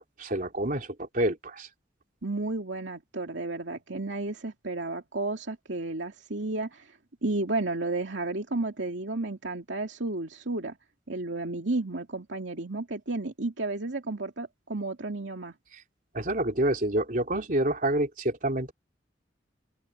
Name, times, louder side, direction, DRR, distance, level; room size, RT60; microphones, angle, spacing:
voice 1, 0.0-1.7 15.7-15.8 16.1-18.7, right 1 dB, 50° right, 3.3 m, -28 dB
voice 2, 2.2-6.9 7.2-10.8 11.1-15.5, right 2 dB, 85° right, 2.4 m, -32 dB
head